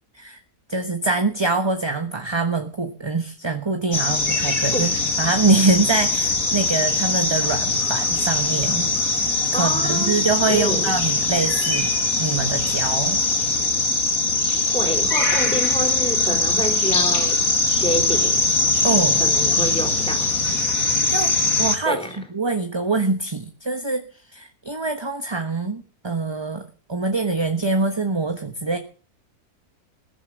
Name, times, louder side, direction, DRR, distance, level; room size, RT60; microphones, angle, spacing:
voice 1, 0.7-4.9 5.2-13.2 18.8-19.2 19.6-19.7 20.6-20.7 21.1-21.3 21.6-24.0 24.3-28.8, right 3 dB, 20° right, 1.2 m, -24 dB
sound 1, 3.9-21.8, left 3 dB, 60° left, 3.0 m, -21 dB
voice 2, 9.5-10.9 14.7-17.4 17.7-18.4 19.1-20.3 21.8-22.2, equal, 5° left, 3.7 m, -28 dB
20.5 x 7.4 x 7.8 m
omnidirectional pair, 1.6 m